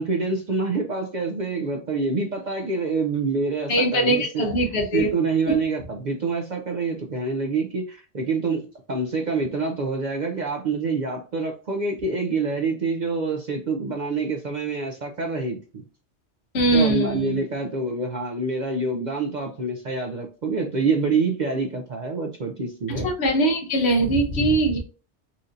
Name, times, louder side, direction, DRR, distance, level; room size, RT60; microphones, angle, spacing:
voice 1, 0.0-4.5 4.9-8.6 8.9-15.6 16.7-23.1, right 4 dB, 55° right, 2 dB, 0.5 m, -26 dB
voice 2, 3.7-5.1 16.5-17.4 22.9-24.8, right 1 dB, 65° left, 3 dB, 1.0 m, -21 dB
4.3 x 2.6 x 2.5 m, 0.35 s
omnidirectional pair, 1.2 m